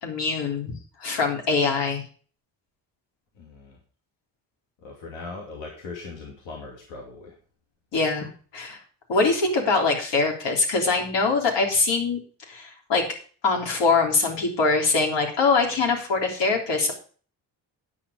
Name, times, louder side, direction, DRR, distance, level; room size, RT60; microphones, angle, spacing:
voice 1, 0.0-2.0 7.9-8.3 8.6-8.7 9.1-12.2 12.5-13.1 13.4-16.9, left 4 dB, 70° left, 2 dB, 3.4 m, -23 dB
voice 2, 3.3-3.8 4.8-7.4, left 3 dB, 90° left, 0 dB, 2.6 m, -39 dB
9.7 x 7.4 x 5.0 m, 0.41 s
supercardioid pair, 70°, 44 cm